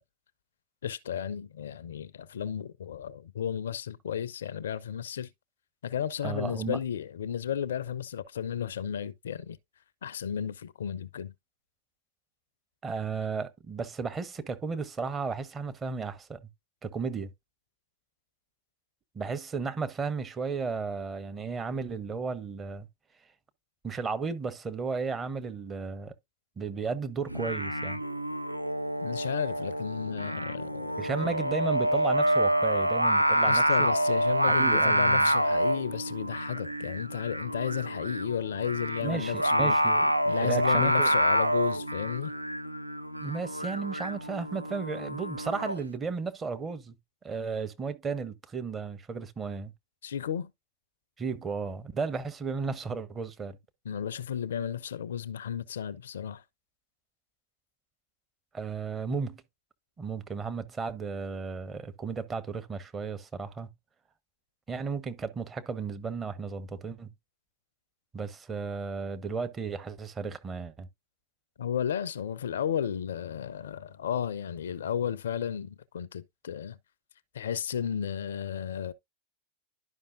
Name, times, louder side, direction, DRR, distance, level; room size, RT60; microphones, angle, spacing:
voice 1, 0.8-5.3 5.8-9.6 10.0-11.3 29.0-31.4 33.4-39.8 40.3-42.3 50.0-50.5 53.9-56.4 71.6-76.8 77.3-78.9, left 8 dB, 65° left, 0.4 m, -33 dB
voice 2, 6.2-6.8 12.8-16.4 16.8-17.3 19.1-22.9 23.8-26.1 26.6-28.0 31.0-33.9 34.5-35.3 39.0-40.1 40.4-41.1 43.2-46.9 47.2-49.7 51.2-53.6 58.5-59.4 60.0-63.7 64.7-67.1 68.1-70.9, right 5 dB, 20° right, 0.8 m, -34 dB
Singing, 27.3-45.8, right 1 dB, 90° right, 0.4 m, -27 dB
11.5 x 5.2 x 2.6 m
figure-of-eight pair, 90°, 0 cm